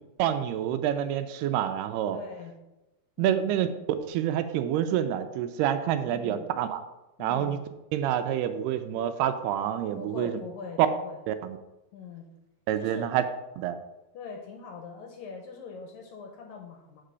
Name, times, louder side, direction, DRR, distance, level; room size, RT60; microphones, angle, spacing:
voice 1, 0.2-2.2 3.2-3.7 4.1-6.8 7.2-7.6 7.9-10.3 10.8-10.9 11.3-11.6 12.7-13.2 13.6-13.8, right 10 dB, 80° right, 9 dB, 2.5 m, -27 dB
voice 2, 2.1-2.5 3.2-3.5 6.1-6.5 7.2-7.6 9.9-11.2 11.9-12.3 12.8-13.1 14.1-17.0, left 5 dB, 70° left, 2 dB, 2.3 m, -42 dB
7.5 x 4.9 x 6.6 m, 0.98 s
omnidirectional pair, 4.8 m